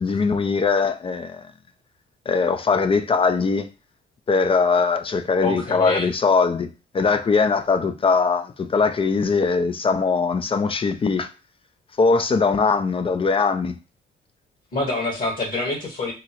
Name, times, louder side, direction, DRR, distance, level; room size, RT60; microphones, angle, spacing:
voice 1, 0.0-1.5 2.3-3.7 4.3-6.7 6.9-11.3 12.0-13.7, left 4 dB, 30° left, 0.3 m, -21 dB
voice 2, 5.4-6.1 14.7-16.1, left 2 dB, 50° left, 1.2 m, -25 dB
3.6 x 2.0 x 2.9 m
cardioid pair, 90°, 20 cm